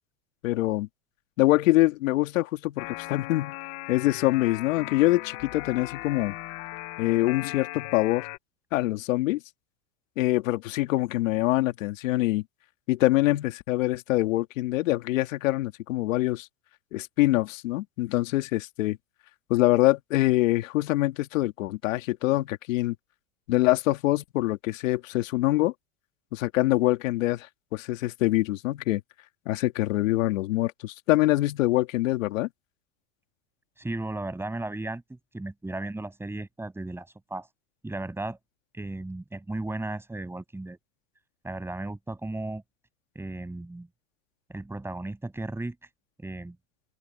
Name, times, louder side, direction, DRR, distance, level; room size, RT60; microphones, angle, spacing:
voice 1, 0.4-0.9 1.4-3.5 3.9-6.3 7.0-8.3 8.7-9.4 10.2-12.4 12.9-16.5 16.9-19.0 19.5-23.0 23.5-25.7 26.3-27.5 27.7-29.0 29.5-32.5, left 17 dB, 80° left, 2.1 m, -24 dB
sound 1, 2.8-8.4, left 22 dB, 50° left, 1.3 m, -38 dB
voice 2, 33.8-37.5 37.8-38.4 38.7-40.8 41.4-42.6 43.1-43.9 44.5-45.8 46.2-46.6, right 2 dB, 5° right, 7.9 m, -35 dB
open air
supercardioid pair, 135°, 39 cm